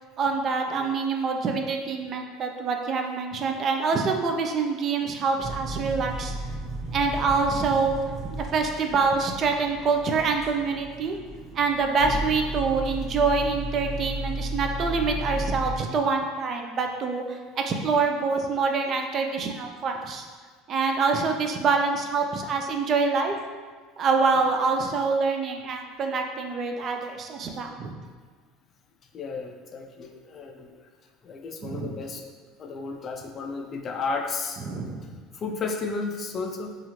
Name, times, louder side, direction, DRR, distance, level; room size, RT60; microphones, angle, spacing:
voice 1, 0.2-6.3 6.9-8.0 8.4-11.2 11.5-20.3 20.7-23.3 24.0-28.0 31.7-32.0 34.7-35.2, right 4 dB, 45° right, 4 dB, 0.3 m, -26 dB
sound 1, 5.4-15.8, right 1 dB, 10° right, 1.1 m, -34 dB
voice 2, 29.1-30.9 31.2-32.2 32.6-34.6 35.3-36.8, left 4 dB, 40° left, 3 dB, 0.3 m, -33 dB
3.0 x 2.4 x 2.8 m, 1.5 s
supercardioid pair, 100°, 0 cm